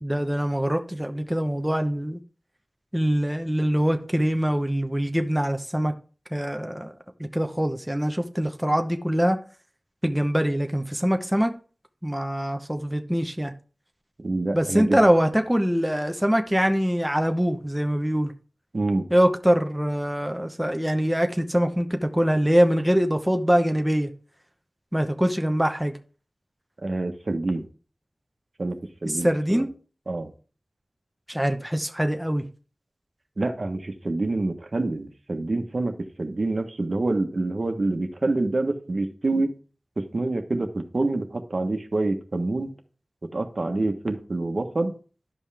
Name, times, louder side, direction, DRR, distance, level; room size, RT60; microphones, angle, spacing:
voice 1, 0.0-2.2 2.9-5.9 6.3-6.9 7.3-9.4 10.0-11.5 12.0-13.5 14.5-18.3 19.1-24.1 24.9-26.0 29.1-29.7 31.3-32.4, equal, 5° right, 0.9 m, -23 dB
voice 2, 14.2-15.0 18.7-19.0 26.8-27.6 28.6-28.8 29.0-29.6 30.1-30.3 33.4-39.5 40.0-42.7 43.3-44.9, right 2 dB, 60° right, 1.2 m, -27 dB
11.0 x 5.5 x 3.4 m
wide cardioid pair, 55°, 0 cm